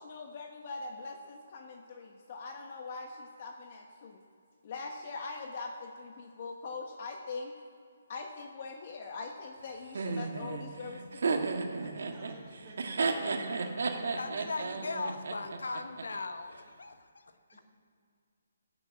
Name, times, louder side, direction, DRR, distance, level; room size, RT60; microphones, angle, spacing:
voice 1, 0.0-4.2 4.6-7.6 8.1-11.4, left 4 dB, 35° left, 3 dB, 1.1 m, -42 dB
Laughter, 9.9-16.0, right 4 dB, 65° right, 1.6 m, -33 dB
voice 2, 11.8-15.1 17.5-17.6, right 1 dB, 15° right, -6 dB, 4.6 m, -51 dB
voice 3, 14.2-17.6, left 3 dB, 85° left, 8 dB, 1.1 m, -39 dB
14.0 x 8.0 x 8.4 m, 2.3 s
hypercardioid pair, 165°, 0 cm